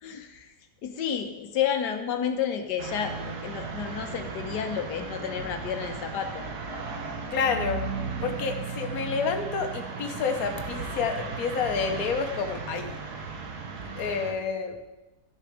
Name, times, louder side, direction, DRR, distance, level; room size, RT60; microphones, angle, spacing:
voice 1, 0.0-0.5 0.8-6.5, left 8 dB, 85° left, 6 dB, 1.4 m, -31 dB
sound 1, 2.8-14.3, right 4 dB, 75° right, 1.7 m, -36 dB
voice 2, 7.3-7.9 8.2-13.0 14.0-14.8, left 5 dB, 65° left, 5 dB, 1.4 m, -29 dB
11.5 x 6.7 x 4.9 m, 1.0 s
omnidirectional pair, 1.7 m